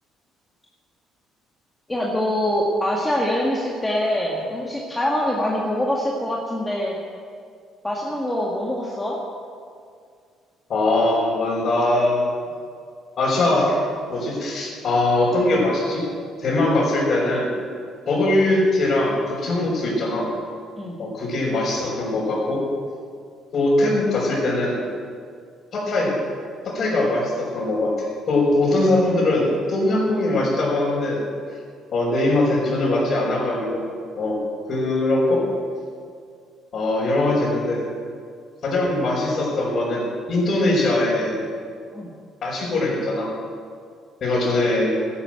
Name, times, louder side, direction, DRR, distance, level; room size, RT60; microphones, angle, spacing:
voice 1, 1.9-7.0 7.8-9.2 20.8-21.0 41.9-42.1, left 1 dB, 10° left, -3 dB, 1.9 m, -24 dB
voice 2, 10.7-12.3 13.2-13.8 14.1-16.0 16.4-17.5 18.0-20.3 21.0-22.6 23.5-24.8 25.7-26.1 26.6-31.2 31.9-33.8 34.1-34.4 34.7-35.4 36.7-37.9 38.6-41.4 42.4-43.3 44.2-44.9, left 2 dB, 50° left, -8 dB, 5.1 m, -21 dB
13.5 x 11.5 x 7.7 m, 2.2 s
cardioid pair, 120°, 0 cm